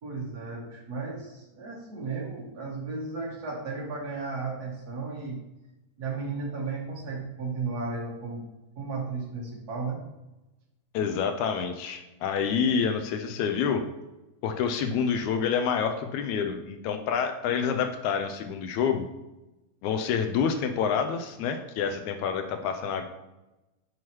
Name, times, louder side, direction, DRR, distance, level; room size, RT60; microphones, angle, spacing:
voice 1, 0.0-5.4 6.0-8.4 8.8-10.0, right 4 dB, 65° right, -3 dB, 0.9 m, -34 dB
voice 2, 10.9-13.8 14.4-19.1 19.8-23.0, left 6 dB, 80° left, 6 dB, 1.8 m, -27 dB
9.2 x 5.5 x 3.1 m, 1.0 s
omnidirectional pair, 3.7 m